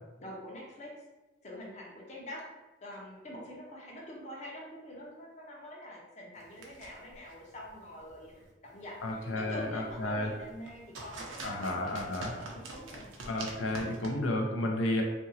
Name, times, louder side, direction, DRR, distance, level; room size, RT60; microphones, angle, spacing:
voice 1, 0.2-0.9 1.4-2.4 2.8-13.5, left 1 dB, 35° left, -3 dB, 0.6 m, -46 dB
sound 1, 6.3-14.1, right 2 dB, 90° right, 0.6 m, -47 dB
voice 2, 9.0-10.3 11.4-12.4 13.2-15.0, left 1 dB, 90° left, 1 dB, 0.5 m, -32 dB
2.8 x 2.6 x 2.7 m, 1.1 s
head